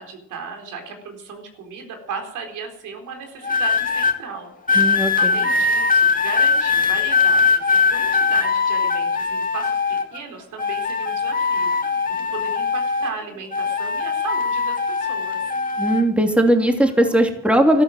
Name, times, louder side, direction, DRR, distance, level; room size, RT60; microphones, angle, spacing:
voice 1, 0.0-4.9 5.2-15.5, right 5 dB, 85° right, 4 dB, 4.1 m, -36 dB
sound 1, 3.4-4.1 4.7-10.2 10.6-13.2 13.5-16.0 16.8-17.1, left 5 dB, 25° left, 2.5 m, -21 dB
voice 2, 4.7-5.3 15.8-17.8, right 1 dB, 5° right, 3 dB, 2.9 m, -18 dB
13.5 x 13.0 x 7.8 m, 0.72 s
cardioid pair, 90°, 30 cm